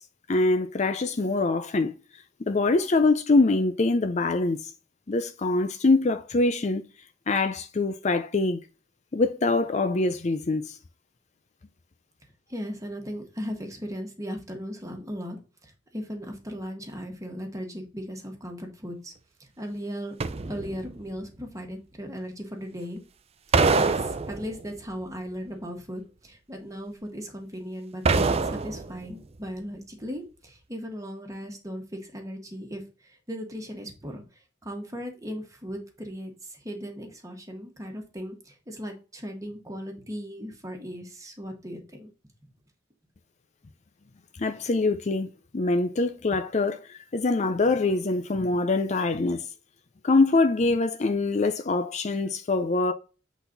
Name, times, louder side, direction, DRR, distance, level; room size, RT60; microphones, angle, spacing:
voice 1, 0.3-1.9 2.4-4.7 5.1-6.8 7.3-8.6 9.1-10.8 44.4-45.3 45.5-49.4 50.0-52.9, left 3 dB, 35° left, 0.5 m, -24 dB
voice 2, 12.5-15.4 15.6-19.1 19.4-20.2 20.5-23.0 23.7-34.2 34.6-42.1, equal, 15° right, 1.7 m, -37 dB
sound 1, 20.2-21.0 23.5-24.8 28.1-29.1 29.4-29.5, right 4 dB, 30° right, 0.5 m, -25 dB
8.0 x 4.1 x 3.9 m
head